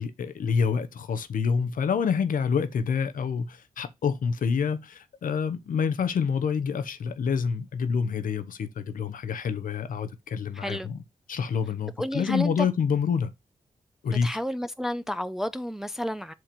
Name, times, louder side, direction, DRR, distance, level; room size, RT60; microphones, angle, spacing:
voice 1, 0.0-11.0 11.3-13.3 14.0-14.4, left 6 dB, 75° left, 0.9 m, -27 dB
voice 2, 10.5-10.9 12.0-12.5 14.1-16.3, equal, 5° right, 0.6 m, -31 dB
7.8 x 2.9 x 5.1 m
supercardioid pair, 45°, 14 cm